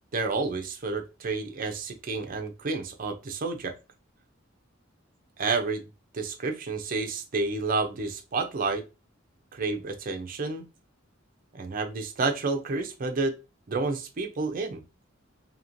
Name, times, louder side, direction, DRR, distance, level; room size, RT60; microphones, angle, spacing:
voice 1, 0.1-3.7 5.4-5.9 6.1-8.8 9.5-10.7 11.5-13.3 13.7-14.8, right 3 dB, 45° right, 0.5 m, -30 dB
3.0 x 2.8 x 2.6 m
head